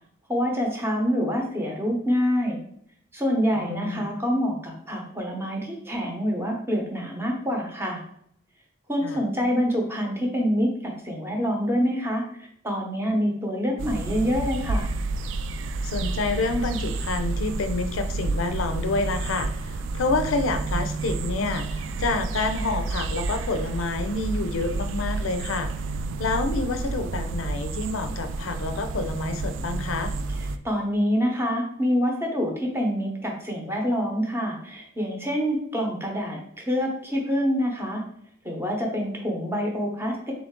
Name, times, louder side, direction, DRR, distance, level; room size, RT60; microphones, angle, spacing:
voice 1, 0.3-2.6 3.1-8.0 8.9-14.9 30.4-38.0 38.4-40.3, equal, 10° right, 0 dB, 0.8 m, -26 dB
voice 2, 3.5-4.1 9.0-9.2 15.8-25.7 26.2-30.1, left 3 dB, 90° left, 8 dB, 0.5 m, -28 dB
sound 1, 13.8-30.6, right 3 dB, 70° right, 0.3 m, -30 dB
3.7 x 3.2 x 3.6 m, 0.69 s
head